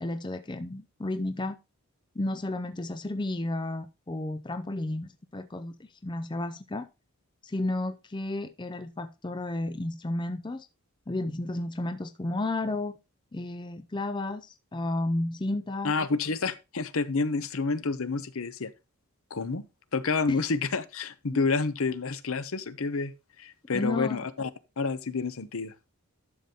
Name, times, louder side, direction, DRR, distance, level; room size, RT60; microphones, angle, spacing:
voice 1, 0.0-1.6 2.2-6.9 7.4-10.7 11.1-13.0 13.3-15.9 20.3-20.4 21.3-21.4 23.7-24.3, left 2 dB, 20° left, 0.5 m, -32 dB
voice 2, 15.8-18.7 19.3-19.6 19.9-24.5 24.8-25.7, left 4 dB, 70° left, 0.8 m, -29 dB
11.5 x 7.0 x 2.9 m
head